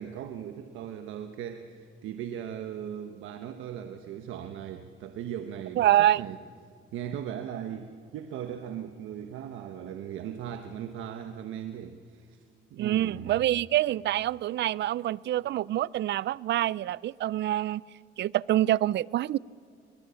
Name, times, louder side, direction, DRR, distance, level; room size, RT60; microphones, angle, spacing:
voice 1, 0.0-6.4 6.9-12.4 12.7-13.3, right 9 dB, 90° right, 1.1 m, -38 dB
voice 2, 5.8-6.2 12.8-17.8 18.2-19.4, right 13 dB, 60° right, 0.4 m, -26 dB
22.0 x 22.0 x 7.0 m
cardioid pair, 90°, 20 cm